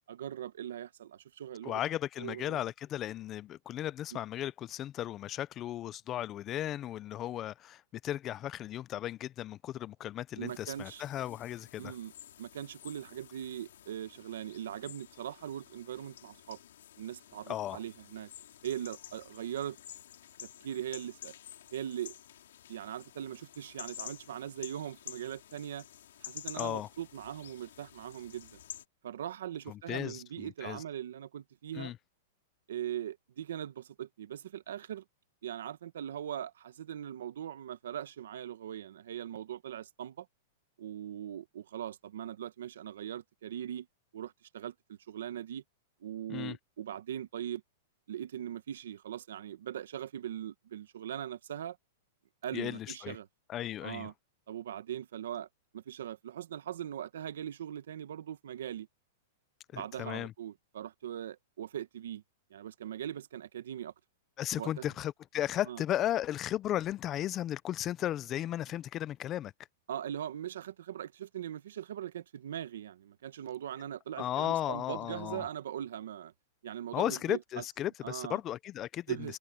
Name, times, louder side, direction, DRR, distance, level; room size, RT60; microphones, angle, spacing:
voice 1, 0.1-1.8 2.2-2.6 10.3-11.0 11.8-12.1 12.4-16.6 17.0-18.3 18.6-19.8 20.4-21.3 21.7-22.1 22.7-25.9 26.2-28.6 29.0-31.9 32.7-35.0 35.4-40.3 40.8-43.9 44.1-45.6 46.0-47.6 48.1-51.8 52.4-53.3 53.8-54.1 54.5-55.5 55.7-58.9 59.7-62.2 62.5-63.9 64.6-64.9 65.7-65.8 69.9-76.3 76.6-77.6 78.0-78.4 79.1-79.4, right 10 dB, 75° right, 1.1 m, -40 dB
voice 2, 1.6-11.9 17.5-17.8 26.6-26.9 29.7-30.8 31.7-32.0 46.3-46.6 52.5-53.2 53.5-54.1 59.7-60.3 64.4-69.5 74.2-75.5 76.9-79.2, left 12 dB, 20° left, 0.4 m, -35 dB
sound 1, 10.5-28.8, left 11 dB, 75° left, 2.9 m, -50 dB
supercardioid pair, 175°, 0 cm